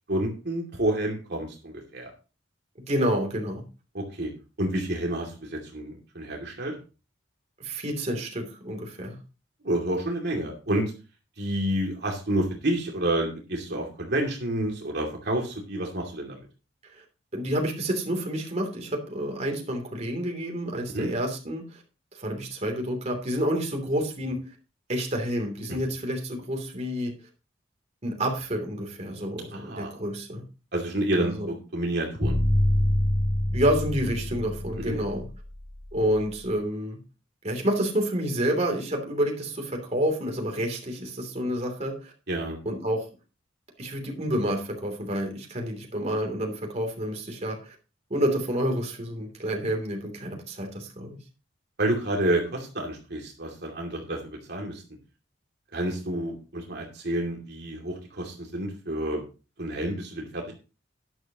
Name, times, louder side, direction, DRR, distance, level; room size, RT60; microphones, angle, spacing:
voice 1, 0.1-2.1 3.9-4.3 4.6-6.7 9.6-10.9 11.4-16.4 20.9-21.1 29.5-29.9 30.7-32.4 34.8-35.0 42.3-42.6 51.8-54.8 55.7-59.2 59.6-60.5, right 1 dB, 60° right, 0 dB, 2.6 m, -29 dB
voice 2, 2.9-3.6 7.6-9.2 17.3-21.8 22.2-24.4 24.9-27.1 28.0-30.4 31.2-31.5 33.5-35.2 35.9-37.0 37.4-42.1 42.6-43.0 43.8-47.7 48.1-51.2, equal, 35° right, 2 dB, 3.1 m, -29 dB
sound 1, 32.2-36.3, left 1 dB, 20° left, 2.3 m, -26 dB
12.0 x 10.5 x 3.0 m, 0.32 s
head